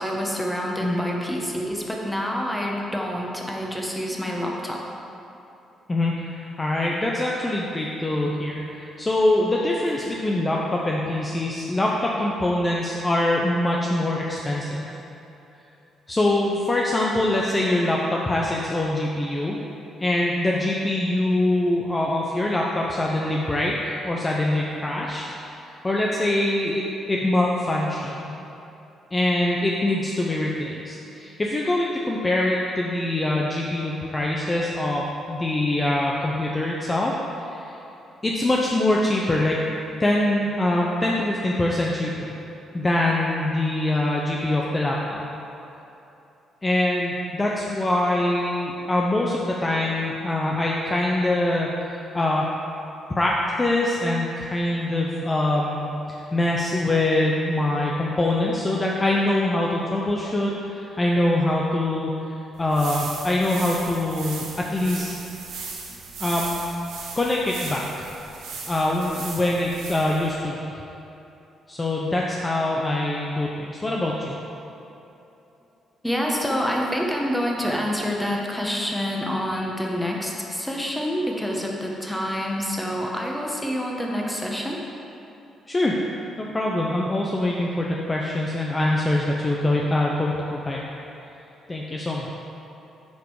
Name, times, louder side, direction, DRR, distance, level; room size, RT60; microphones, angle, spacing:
voice 1, 0.0-4.8 65.9-66.0 76.0-84.8, equal, 5° left, -1 dB, 1.2 m, -27 dB
voice 2, 5.9-14.9 16.1-19.6 20.0-25.2 25.6-28.3 29.1-37.7 38.2-39.6 40.0-42.4 42.7-45.2 46.6-51.7 52.1-52.5 53.1-62.1 62.6-65.2 66.2-66.6 67.1-68.1 68.7-70.8 71.7-74.4 85.7-86.0 86.4-90.8 91.7-92.3, left 1 dB, 20° left, -2 dB, 0.7 m, -24 dB
sound 1, 62.5-70.3, right 4 dB, 85° right, 1.4 m, -37 dB
8.1 x 5.0 x 4.8 m, 2.9 s
cardioid pair, 90°, 0 cm